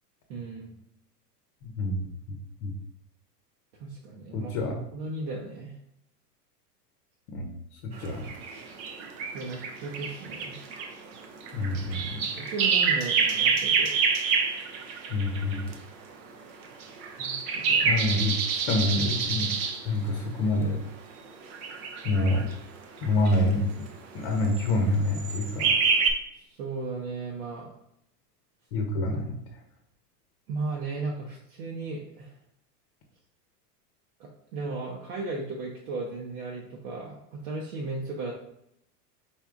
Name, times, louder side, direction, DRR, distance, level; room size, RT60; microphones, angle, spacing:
voice 1, 0.3-0.7 3.8-5.7 9.3-10.6 12.3-13.9 17.2-18.0 26.5-27.7 30.5-32.4 34.2-38.3, right 3 dB, 65° right, -2 dB, 0.9 m, -36 dB
voice 2, 1.6-2.1 2.6-2.7 4.3-4.8 7.3-7.5 7.8-8.3 11.5-12.3 15.1-15.7 17.9-19.5 19.8-20.8 22.0-22.5 23.0-23.6 24.1-25.7 28.7-29.4, left 2 dB, 45° left, 2 dB, 0.8 m, -27 dB
sound 1, 7.9-15.8 16.6-19.8 21.3-22.5 23.0-23.4 24.4-24.8 25.1-26.1, right 5 dB, 35° right, 0.5 m, -27 dB
4.3 x 3.6 x 2.4 m, 0.76 s
hypercardioid pair, 115°, 49 cm